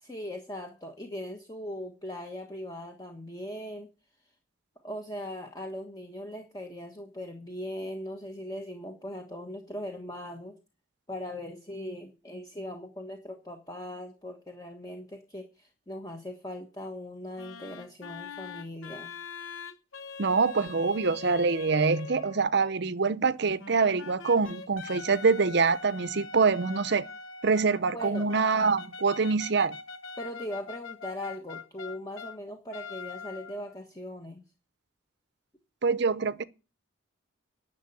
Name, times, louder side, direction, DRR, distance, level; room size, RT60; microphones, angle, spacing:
voice 1, 0.0-3.9 4.8-10.6 11.1-19.2 27.9-28.3 30.2-34.4, left 1 dB, 20° left, 1.3 m, -39 dB
sound 1, 17.4-22.5 23.4-32.4 32.7-33.8, left 5 dB, 80° left, 1.0 m, -43 dB
voice 2, 20.2-27.0 27.4-29.8 35.8-36.4, right 4 dB, 55° right, 0.6 m, -25 dB
11.0 x 6.7 x 8.6 m
head